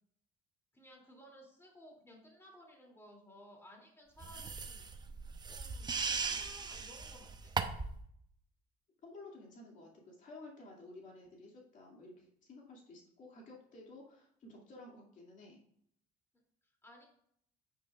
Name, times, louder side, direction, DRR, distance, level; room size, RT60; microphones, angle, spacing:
voice 1, 0.7-4.9 5.5-7.5 16.8-17.0, left 1 dB, 15° left, 0 dB, 2.9 m, -58 dB
sound 1, 4.2-8.0, right 4 dB, 25° right, 0.8 m, -38 dB
voice 2, 9.0-15.6, left 2 dB, 50° left, -2 dB, 2.5 m, -53 dB
9.5 x 8.9 x 2.5 m, 0.67 s
cardioid pair, 110°, 17 cm